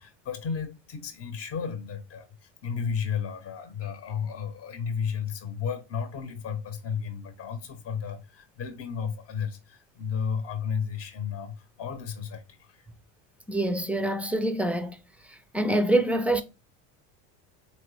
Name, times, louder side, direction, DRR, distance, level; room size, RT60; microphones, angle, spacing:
voice 1, 0.0-12.9, left 6 dB, 40° left, 0.8 m, -33 dB
voice 2, 13.5-15.0 15.5-16.4, right 1 dB, 5° right, 0.5 m, -25 dB
3.9 x 3.0 x 3.2 m
supercardioid pair, 110°, 34 cm